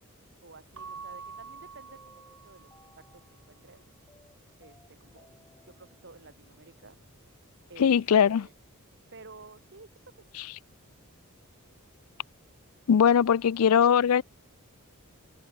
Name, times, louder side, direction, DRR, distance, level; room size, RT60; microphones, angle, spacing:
voice 1, 0.4-3.9 4.6-5.3 5.7-7.0 7.7-8.5 9.1-10.4, right 3 dB, 50° right, 2.2 m, -52 dB
Keyboard (musical) / Bell, 0.7-3.2, right 5 dB, 75° right, 3.4 m, -46 dB
sound 1, 1.9-8.1, left 1 dB, 15° left, 3.1 m, -63 dB
voice 2, 7.8-8.5 12.9-14.2, left 7 dB, 75° left, 0.4 m, -20 dB
head